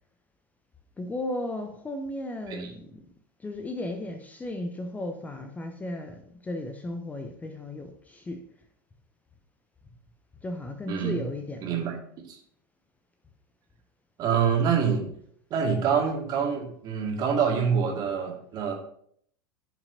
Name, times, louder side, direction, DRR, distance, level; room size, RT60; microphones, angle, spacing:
voice 1, 1.0-3.0 3.4-8.4 10.4-11.8, left 1 dB, 15° left, 6 dB, 0.8 m, -35 dB
voice 2, 10.9-11.2 11.6-11.9 12.3-12.4 14.2-15.0 15.5-18.7, right 7 dB, 35° right, 1 dB, 2.2 m, -26 dB
14.5 x 5.8 x 2.8 m, 0.64 s
figure-of-eight pair, 80°, 11 cm